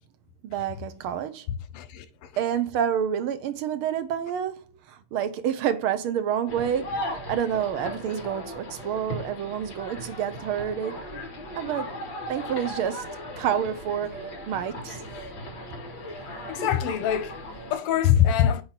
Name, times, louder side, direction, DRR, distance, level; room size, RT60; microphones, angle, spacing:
voice 1, 0.4-1.5 2.4-11.1 11.6-11.9 12.3-13.1 13.4-15.0, right 9 dB, 75° right, 1.7 m, -28 dB
voice 2, 1.7-2.3 16.5-18.6, left 10 dB, 90° left, 1.8 m, -24 dB
sound 1, 6.5-17.8, left 1 dB, 55° left, 2.8 m, -37 dB
8.6 x 3.0 x 5.8 m
omnidirectional pair, 2.4 m